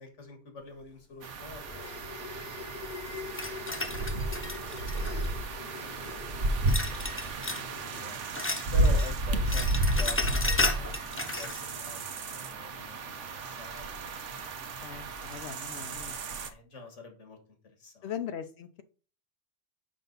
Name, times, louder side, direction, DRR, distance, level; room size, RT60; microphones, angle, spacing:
voice 1, 0.0-3.2 3.6-6.2 6.5-7.6 7.9-8.2 8.7-14.6 15.8-17.4 17.6-18.1, left 3 dB, 85° left, 5 dB, 1.9 m, -48 dB
sound 1, 0.7-9.5, left 5 dB, 40° left, 1.0 m, -45 dB
sound 2, 1.2-16.5, right 2 dB, 85° right, 1.2 m, -32 dB
sound 3, 3.4-5.5 6.7-7.7 8.0-9.1 9.4-11.6, left 2 dB, 15° left, 0.4 m, -33 dB
voice 2, 14.8-16.1 18.0-18.8, left 9 dB, 70° left, 9 dB, 0.8 m, -40 dB
6.2 x 5.4 x 4.0 m, 0.38 s
omnidirectional pair, 1.2 m